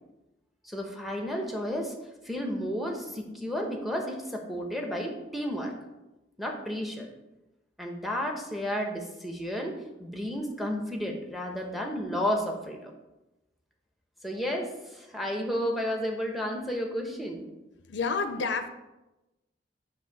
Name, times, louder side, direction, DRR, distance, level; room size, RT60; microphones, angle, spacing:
voice 1, 0.6-1.9 2.2-5.7 6.4-7.1 7.8-12.9 14.2-17.4, equal, ahead, 1 dB, 0.8 m, -32 dB
voice 2, 17.9-18.7, left 4 dB, 80° left, 8 dB, 0.5 m, -29 dB
7.7 x 2.6 x 5.8 m, 1.0 s
head